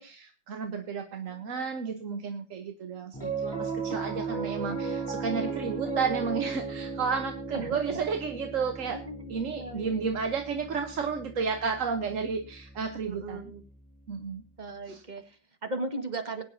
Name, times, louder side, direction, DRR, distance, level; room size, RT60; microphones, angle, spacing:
voice 1, 0.0-9.0 9.3-13.4 14.1-14.4 14.9-15.0, right 5 dB, 50° right, 6 dB, 1.2 m, -32 dB
voice 2, 1.3-2.3 7.5-8.0 8.9-10.1 13.1-13.6 14.6-16.4, right 2 dB, 25° right, 6 dB, 1.6 m, -38 dB
Piano, 3.1-13.6, right 4 dB, 10° left, 2.9 m, -36 dB
21.5 x 9.8 x 2.7 m, 0.36 s
omnidirectional pair, 2.0 m